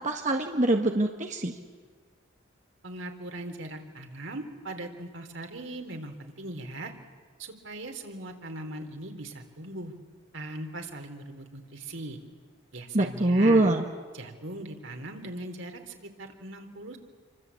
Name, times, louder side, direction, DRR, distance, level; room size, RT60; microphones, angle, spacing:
voice 1, 0.0-1.6 12.9-13.8, right 2 dB, 40° right, 3 dB, 1.5 m, -24 dB
voice 2, 2.8-6.9 7.4-9.9 10.3-12.2 12.7-13.7 14.1-17.0, right 1 dB, 80° right, 4 dB, 3.6 m, -39 dB
28.5 x 24.5 x 8.5 m, 1.5 s
head